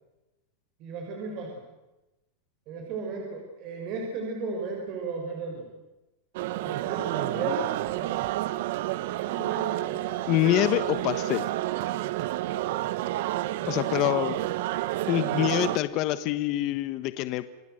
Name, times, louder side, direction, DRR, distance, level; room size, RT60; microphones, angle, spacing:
voice 1, 0.8-1.5 2.7-5.7 6.5-8.2 9.3-10.1 11.9-12.1 13.6-14.3, right 3 dB, 35° right, 1 dB, 5.7 m, -35 dB
sound 1, 6.3-15.8, right 15 dB, 60° right, 1.0 m, -30 dB
voice 2, 10.3-11.5 13.7-14.4 15.1-17.4, left 14 dB, 35° left, 12 dB, 1.2 m, -25 dB
28.0 x 22.0 x 7.9 m, 1.0 s
supercardioid pair, 170°, 0 cm